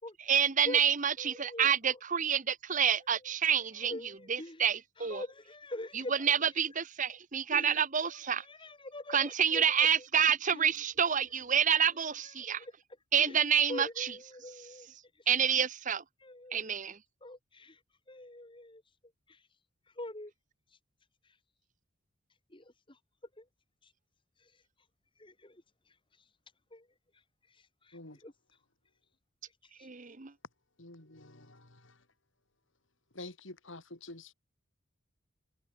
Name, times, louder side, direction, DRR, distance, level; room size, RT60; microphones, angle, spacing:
voice 1, 0.3-3.9 4.3-5.2 6.2-8.4 9.1-12.6 13.1-14.1 15.3-16.0 16.5-17.0 29.8-30.3, right 8 dB, 40° right, 0.9 m, -28 dB
voice 2, 1.2-2.0 2.8-3.3 3.6-4.7 5.0-6.4 7.5-10.1 10.5-10.7 12.2-12.7 13.2-14.9 15.2-15.3 15.5-15.6 16.2-16.8 17.2-17.8 18.1-18.8 19.3-19.4 20.0-20.3 22.5-23.0 23.4-23.5 23.8-23.9 24.4-24.5 25.2-25.6 26.7-26.9 27.8-28.3 29.8-29.9, left 1 dB, 25° left, 2.1 m, -45 dB
voice 3, 30.8-31.9 33.1-34.3, left 2 dB, 65° left, 3.7 m, -48 dB
head